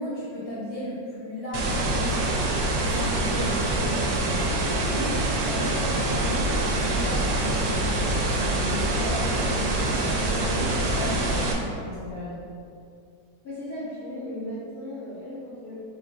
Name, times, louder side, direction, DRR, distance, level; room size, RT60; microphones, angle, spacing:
voice 1, 0.0-12.4, equal, 30° right, -11 dB, 0.7 m, -35 dB
sound 1, 1.5-11.5, right 2 dB, 80° right, 1.1 m, -25 dB
voice 2, 13.4-15.8, left 1 dB, 70° left, -11 dB, 1.9 m, -36 dB
3.9 x 2.4 x 4.1 m, 2.4 s
omnidirectional pair, 1.6 m